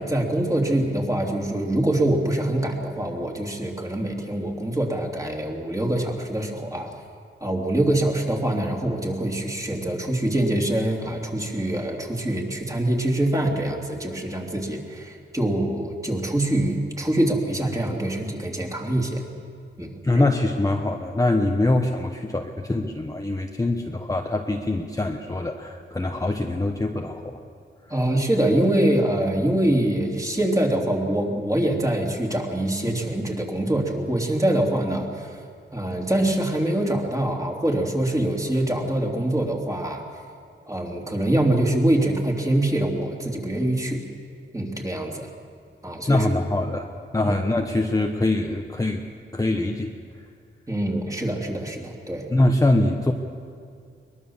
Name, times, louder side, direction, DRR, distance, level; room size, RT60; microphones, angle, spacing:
voice 1, 0.0-6.9 7.4-19.2 19.8-20.2 27.9-35.4 35.7-40.0 40.7-44.0 44.5-45.3 45.8-46.2 47.2-47.3 50.7-52.3, right 1 dB, 15° right, 1 dB, 3.0 m, -24 dB
voice 2, 19.8-27.4 46.1-46.9 47.1-49.0 49.3-50.3 52.3-53.1, left 2 dB, 15° left, 3 dB, 1.1 m, -23 dB
22.5 x 21.0 x 7.2 m, 2.2 s
wide cardioid pair, 115°, 21 cm